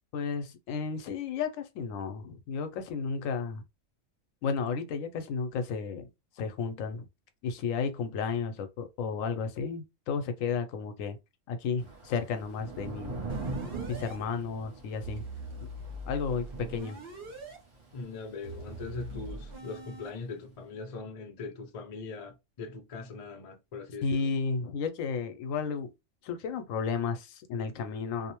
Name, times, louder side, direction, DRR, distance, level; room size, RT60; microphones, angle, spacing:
voice 1, 0.1-3.6 4.4-6.1 6.4-7.1 7.4-11.2 11.5-13.2 13.9-15.3 16.0-17.0 24.0-25.9 26.2-28.3, left 5 dB, 85° left, 1.0 m, -33 dB
Thunder / Rain, 11.8-20.2, right 3 dB, 30° right, 0.6 m, -42 dB
sound 1, 13.3-14.2 15.0-17.6 18.4-20.1, right 1 dB, 50° right, 1.0 m, -43 dB
voice 2, 17.9-24.3, left 4 dB, 55° left, 0.4 m, -41 dB
2.5 x 2.0 x 2.9 m
omnidirectional pair, 1.3 m